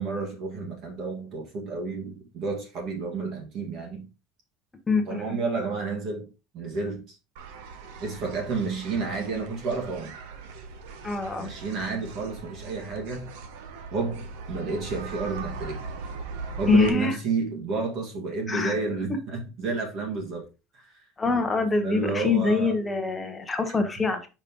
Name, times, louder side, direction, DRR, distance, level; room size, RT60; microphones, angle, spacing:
voice 1, 0.0-4.0 5.1-6.3 6.5-7.2 8.0-10.1 11.4-13.3 13.9-15.8 16.6-20.4 20.8-20.9 21.8-22.7, right 4 dB, 40° right, 1.8 m, -30 dB
voice 2, 4.9-5.4 11.0-11.5 16.7-17.2 18.5-18.7 21.2-24.3, left 3 dB, 10° left, 1.0 m, -24 dB
sound 1, 7.4-16.9, right 4 dB, 80° right, 1.1 m, -40 dB
5.3 x 5.2 x 3.7 m
cardioid pair, 170°, 0 cm